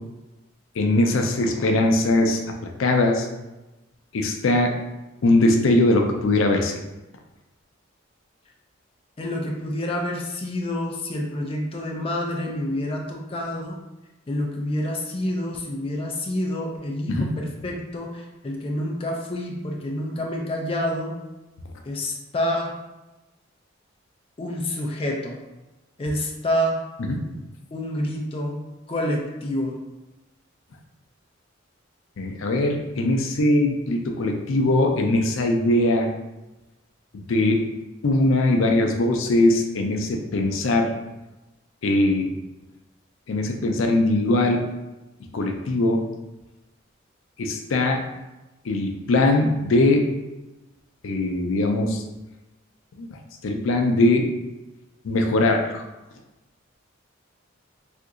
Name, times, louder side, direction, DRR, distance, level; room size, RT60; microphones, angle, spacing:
voice 1, 0.8-2.4 2.8-3.3 4.1-4.8 5.2-6.7 17.1-17.3 27.1-27.2 32.2-36.1 37.1-37.7 38.0-40.9 41.8-42.3 43.3-44.7 45.3-46.0 47.4-48.0 48.6-50.1 51.0-52.0 53.0-53.1 53.4-54.3 55.0-55.8, left 2 dB, 85° left, 3 dB, 0.4 m, -21 dB
voice 2, 9.2-13.8 14.3-21.2 21.8-22.8 24.4-25.4 26.0-26.8 27.7-29.8, left 1 dB, 30° left, 0 dB, 0.4 m, -28 dB
2.8 x 2.5 x 3.6 m, 1.0 s
head